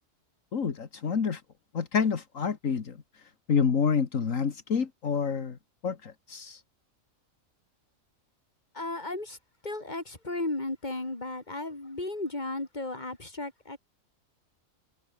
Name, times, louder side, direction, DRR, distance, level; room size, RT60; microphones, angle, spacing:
voice 1, 0.5-1.4 1.7-3.0 3.5-5.6 5.8-6.6, left 6 dB, 75° left, 2.0 m, -28 dB
voice 2, 8.7-9.4 9.6-13.8, left 2 dB, 35° left, 3.8 m, -34 dB
omnidirectional pair, 1.4 m